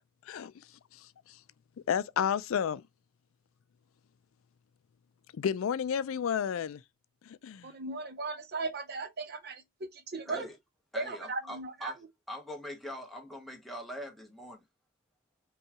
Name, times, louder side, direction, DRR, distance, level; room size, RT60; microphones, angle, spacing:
voice 1, 1.9-2.8 5.3-6.8 7.3-7.7, left 8 dB, 75° left, 0.4 m, -31 dB
voice 2, 7.6-10.5 11.0-11.9, right 3 dB, 50° right, 0.6 m, -37 dB
voice 3, 10.2-10.5 10.9-12.0 12.3-14.6, equal, ahead, 1.0 m, -42 dB
5.4 x 2.3 x 2.8 m
head